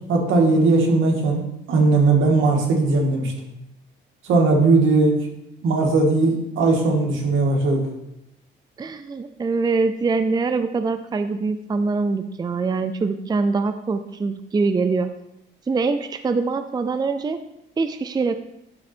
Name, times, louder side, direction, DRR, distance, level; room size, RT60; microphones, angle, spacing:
voice 1, 0.1-1.4 1.7-3.3 4.2-5.2 5.6-7.8, right 3 dB, 80° right, 1 dB, 1.8 m, -18 dB
voice 2, 8.8-15.1 15.7-17.4 17.8-18.4, right 4 dB, 20° right, 10 dB, 0.4 m, -23 dB
10.5 x 3.9 x 4.3 m, 0.84 s
cardioid pair, 90°, 20 cm